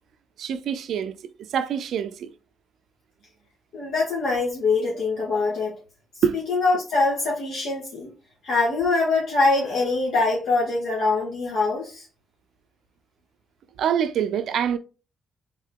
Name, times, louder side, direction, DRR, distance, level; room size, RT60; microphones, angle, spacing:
voice 1, 0.4-2.3 6.2-6.4 13.8-14.8, right 8 dB, 70° right, 0.5 m, -25 dB
voice 2, 3.7-5.8 6.5-8.1 8.4-12.1, left 3 dB, 70° left, 1.5 m, -23 dB
3.7 x 3.6 x 3.5 m
cardioid pair, 90°, 0 cm